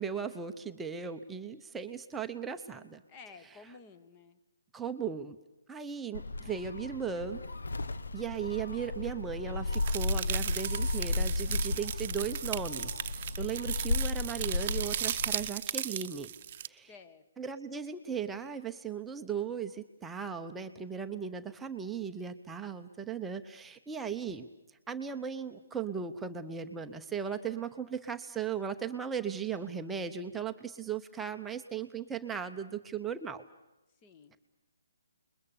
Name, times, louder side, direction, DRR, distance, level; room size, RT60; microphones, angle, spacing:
voice 1, 0.0-3.0 4.7-5.4 5.7-7.4 8.1-16.3 16.7-16.9 17.4-24.5 24.9-33.4, right 7 dB, 10° right, 5 dB, 0.8 m, -37 dB
voice 2, 3.1-4.4 16.9-17.4 34.0-34.4, left 4 dB, 25° left, 10 dB, 1.6 m, -53 dB
Gull seagull, 6.1-15.5, left 2 dB, 75° left, 1.0 m, -34 dB
sound 1, 9.7-16.7, right 10 dB, 40° right, 0.8 m, -37 dB
28.5 x 21.5 x 7.1 m, 1.0 s
figure-of-eight pair, 145°, 0 cm